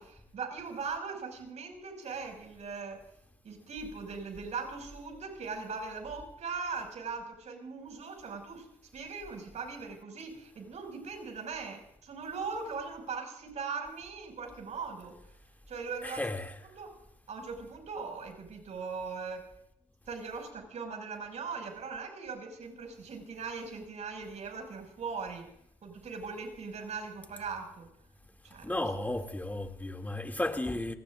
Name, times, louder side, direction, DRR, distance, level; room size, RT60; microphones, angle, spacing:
voice 1, 0.0-3.0 3.4-8.7 8.9-15.2 15.7-16.2 16.8-16.9 17.3-19.5 20.1-25.5 25.8-27.9 28.4-28.9, right 5 dB, 65° right, 6.0 m, -40 dB
voice 2, 16.0-16.6 28.6-30.9, left 1 dB, 15° left, 2.6 m, -34 dB
28.0 x 18.0 x 2.6 m
supercardioid pair, 65°, 13 cm